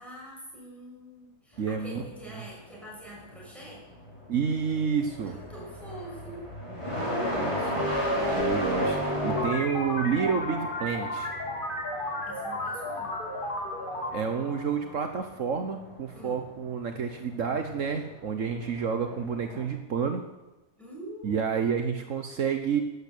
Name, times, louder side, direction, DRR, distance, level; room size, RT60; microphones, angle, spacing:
voice 1, 0.0-3.8 5.3-6.5 12.2-13.2 16.1-16.5 20.8-21.6, right 1 dB, ahead, -4 dB, 6.9 m, -45 dB
sound 1, 1.6-19.7, equal, 20° left, 6.0 m, -34 dB
voice 2, 1.6-2.1 2.3-2.4 4.3-5.4 7.3-7.9 8.3-11.3 14.1-20.2 21.2-22.8, right 6 dB, 65° right, 6 dB, 1.5 m, -29 dB
sound 2, 9.3-15.5, left 1 dB, 35° left, 2.9 m, -34 dB
13.0 x 12.0 x 8.6 m, 1.0 s
omnidirectional pair, 1.5 m